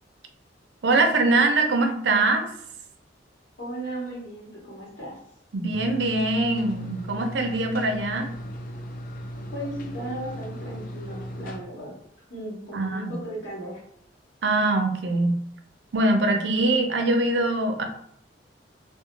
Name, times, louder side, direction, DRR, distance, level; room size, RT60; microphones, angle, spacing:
voice 1, 0.8-2.5 5.5-8.3 12.7-13.2 14.4-15.4 15.9-17.8, right 2 dB, 70° right, 6 dB, 0.4 m, -23 dB
voice 2, 3.6-5.2 9.5-11.9 12.3-13.8, right 1 dB, 80° left, -6 dB, 1.1 m, -36 dB
sound 1, 5.7-11.6, equal, 50° left, 0.4 m, -37 dB
2.4 x 2.2 x 2.9 m, 0.70 s
head